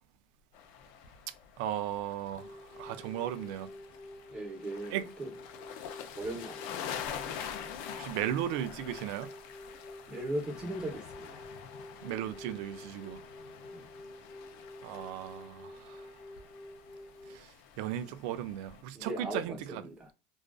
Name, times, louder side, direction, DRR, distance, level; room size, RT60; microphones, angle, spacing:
sound 1, 0.5-18.8, left 8 dB, 65° left, 0.4 m, -46 dB
voice 1, 1.6-3.7 4.9-5.1 7.9-9.3 12.0-13.2 14.8-16.1 17.3-19.8, right 11 dB, 70° right, 0.3 m, -36 dB
sound 2, 2.4-17.4, left 1 dB, 10° left, 0.7 m, -49 dB
voice 2, 4.3-5.3 6.1-6.9 10.1-11.4 13.7-13.8 18.9-20.1, right 1 dB, 20° right, 0.8 m, -38 dB
2.4 x 2.4 x 2.3 m
supercardioid pair, 140°, 4 cm